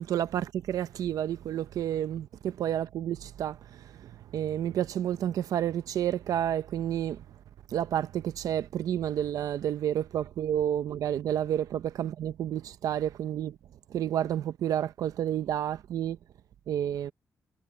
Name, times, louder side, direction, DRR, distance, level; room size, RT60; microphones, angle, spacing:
voice 1, 0.0-7.2 7.7-13.6 13.9-16.2 16.7-17.1, right 10 dB, 80° right, 0.9 m, -30 dB
cardioid pair, 110°, 6 cm